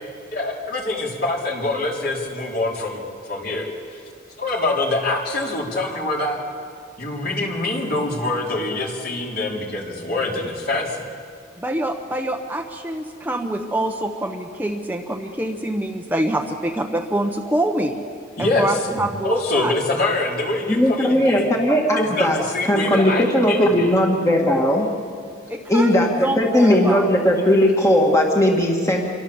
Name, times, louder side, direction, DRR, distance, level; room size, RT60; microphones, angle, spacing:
voice 1, 0.3-4.0 4.4-6.4 7.0-11.0 18.4-21.5 22.0-23.9, left 2 dB, 50° left, -2 dB, 4.2 m, -25 dB
voice 2, 11.6-18.0 18.4-19.7 25.5-27.1, right 1 dB, 10° right, 2 dB, 1.1 m, -25 dB
voice 3, 20.7-24.9 25.7-29.0, equal, 15° left, 0 dB, 2.0 m, -18 dB
27.5 x 23.5 x 7.2 m, 2.2 s
head